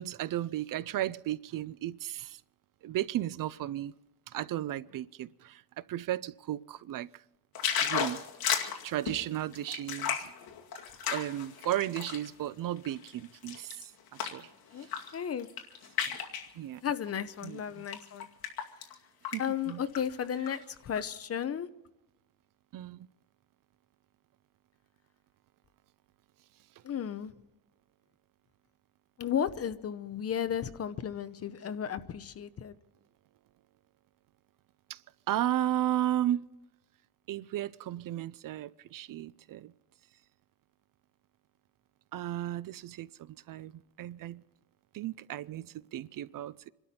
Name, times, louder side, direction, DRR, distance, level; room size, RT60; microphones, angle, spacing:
voice 1, 0.0-2.4 2.8-4.0 4.3-7.1 7.8-8.2 8.8-10.3 11.1-13.8 14.3-14.5 16.6-16.8 17.4-17.6 19.3-19.4 19.7-19.8 22.7-23.1 34.9-35.0 35.3-36.4 37.3-39.7 42.1-43.7 44.0-44.4 44.9-46.7, right 12 dB, 55° right, 0.5 m, -34 dB
sound 1, 7.5-12.3 12.8-14.4 14.8-15.1 15.4-16.5 17.3-17.4 17.9-18.9 19.2-19.4 19.7-20.5 21.0-21.1, left 8 dB, 65° left, 2.3 m, -34 dB
voice 2, 15.1-15.5 16.8-18.3 19.4-21.7 26.8-27.3 29.2-32.8, left 8 dB, 35° left, 0.8 m, -34 dB
27.0 x 12.5 x 4.3 m
cardioid pair, 160°, 39 cm